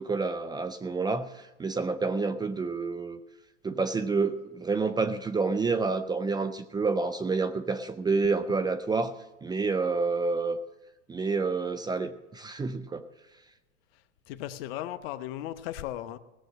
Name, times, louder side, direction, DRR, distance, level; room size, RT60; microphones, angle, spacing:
voice 1, 0.0-3.2 3.6-9.1 9.4-10.6 11.1-13.0, right 4 dB, 10° right, 0.5 m, -28 dB
voice 2, 13.9-16.2, left 13 dB, 55° left, 1.0 m, -37 dB
17.5 x 7.8 x 7.5 m
hypercardioid pair, 105°, 35 cm